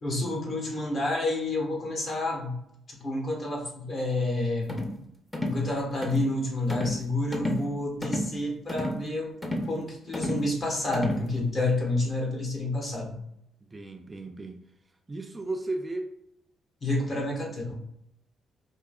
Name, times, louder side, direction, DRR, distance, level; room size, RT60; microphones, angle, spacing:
voice 1, 0.0-2.6 3.0-4.8 5.5-9.3 9.7-13.2 16.8-17.8, left 2 dB, 45° left, 0 dB, 1.2 m, -29 dB
sound 1, 4.7-5.0 5.3-5.6 6.0-6.3 6.7-7.0 7.3-7.7 8.0-8.3 8.7-9.0 9.4-9.7 10.1-10.5 10.9-11.3, left 1 dB, 15° left, 0.7 m, -31 dB
voice 2, 13.7-14.6 15.1-16.1, right 2 dB, 25° right, 4 dB, 0.4 m, -34 dB
4.6 x 2.7 x 2.3 m, 0.77 s
cardioid pair, 90°, 0 cm